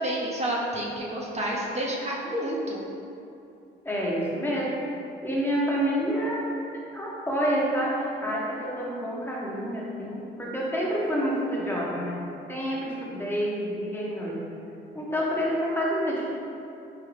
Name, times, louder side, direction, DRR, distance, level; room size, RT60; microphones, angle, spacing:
voice 1, 0.0-2.8, right 1 dB, 35° right, -4 dB, 0.5 m, -29 dB
voice 2, 3.8-4.7 5.2-6.4 6.9-12.2 12.5-14.4 14.9-16.3, equal, 10° left, -5 dB, 0.7 m, -28 dB
4.8 x 2.1 x 3.2 m, 2.7 s
cardioid pair, 90°, 20 cm